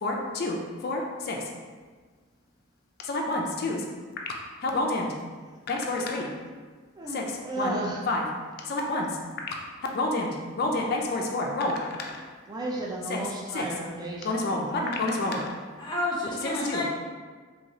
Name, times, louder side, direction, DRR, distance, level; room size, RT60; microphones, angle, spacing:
voice 1, 0.0-1.4 3.0-3.8 4.6-5.1 5.7-6.3 7.1-7.2 7.6-7.8 8.1-8.2 8.7-9.1 9.9-12.2 13.1-13.2 13.5-13.6 14.2-15.5 16.6-16.8, left 2 dB, 50° left, 0 dB, 0.4 m, -28 dB
voice 2, 7.0-8.1 12.4-15.5, right 1 dB, 20° right, -1 dB, 0.4 m, -35 dB
voice 3, 15.8-16.8, left 1 dB, 20° left, -5 dB, 0.7 m, -29 dB
3.1 x 2.9 x 2.6 m, 1.5 s
head